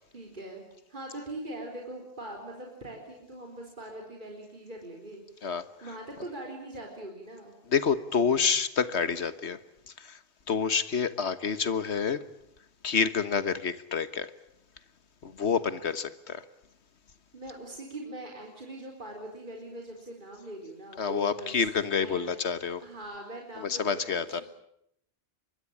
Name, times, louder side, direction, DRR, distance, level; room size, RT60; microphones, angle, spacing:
voice 1, 0.0-7.5 17.3-22.3 22.8-24.4, right 1 dB, 45° right, 0 dB, 4.1 m, -42 dB
voice 2, 7.7-9.6 10.0-10.2 10.5-12.2 12.8-14.3 15.2-16.4 21.0-22.8 23.6-24.4, left 6 dB, 75° left, 14 dB, 1.6 m, -28 dB
25.0 x 22.0 x 8.6 m, 0.75 s
omnidirectional pair, 1.2 m